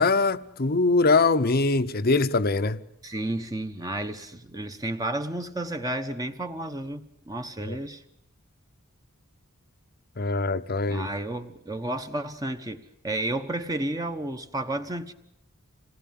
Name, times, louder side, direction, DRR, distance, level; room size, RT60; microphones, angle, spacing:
voice 1, 0.0-2.8 7.6-7.8 10.2-11.1, left 3 dB, 45° left, 0.8 m, -22 dB
voice 2, 3.0-8.0 10.9-15.1, right 1 dB, 15° right, 1.0 m, -32 dB
27.0 x 19.0 x 7.4 m
head